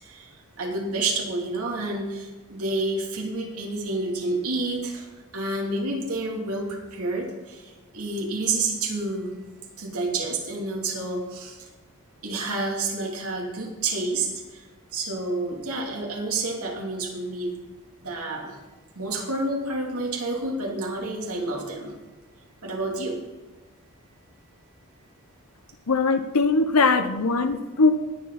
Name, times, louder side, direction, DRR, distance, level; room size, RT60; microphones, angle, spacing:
voice 1, 0.0-5.1 5.3-9.3 9.8-11.6 12.2-14.6 14.9-17.6 18.0-18.6 18.9-21.9 22.6-23.2, right 2 dB, 85° right, -1 dB, 3.0 m, -29 dB
voice 2, 25.9-27.9, left 3 dB, 90° left, 8 dB, 0.8 m, -21 dB
20.0 x 7.6 x 4.1 m, 1.2 s
head